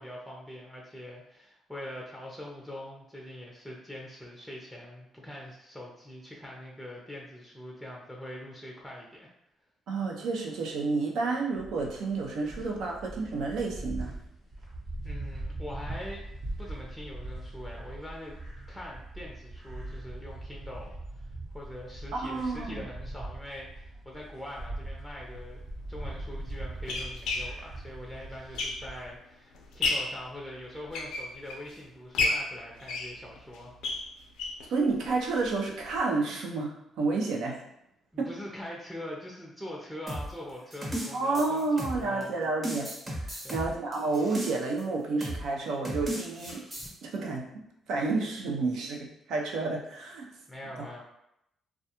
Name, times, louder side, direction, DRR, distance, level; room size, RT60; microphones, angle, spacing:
voice 1, 0.0-9.3 15.0-16.2 16.6-18.3 18.7-25.6 25.9-33.7 38.1-42.3 43.4-43.7 50.5-51.0, left 1 dB, 5° right, -3 dB, 0.5 m, -43 dB
voice 2, 9.9-14.1 22.1-22.8 34.7-37.6 38.2-38.3 41.1-42.9 43.2-46.6 47.0-47.5 47.9-50.3, right 3 dB, 80° right, 0 dB, 0.5 m, -30 dB
sound 1, 11.5-29.1, right 1 dB, 50° right, 0.9 m, -41 dB
sound 2, 25.3-25.4 26.2-29.1 29.5-30.2 30.7-31.7 32.1-34.7 35.0-35.1 35.4-35.5 35.9-36.0, left 3 dB, 90° left, 0.4 m, -32 dB
sound 3, 40.1-42.2 42.6-44.8 45.2-45.5 45.8-46.9, right 1 dB, 25° right, 1.0 m, -35 dB
2.3 x 2.2 x 2.8 m, 0.80 s
cardioid pair, 90°, 0 cm